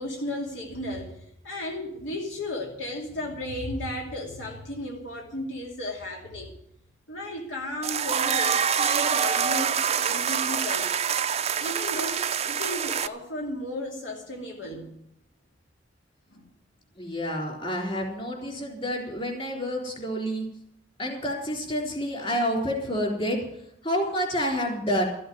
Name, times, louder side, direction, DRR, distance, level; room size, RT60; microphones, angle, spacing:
voice 1, 0.0-6.5 7.1-10.9 11.6-15.0 16.3-16.4, left 1 dB, 75° left, 0 dB, 2.7 m, -34 dB
sound 1, 7.8-13.1, right 7 dB, 35° right, 0.5 m, -26 dB
voice 2, 17.0-20.4 21.0-23.4 23.8-25.1, equal, 30° left, 1 dB, 4.0 m, -28 dB
14.0 x 7.8 x 9.3 m, 0.75 s
head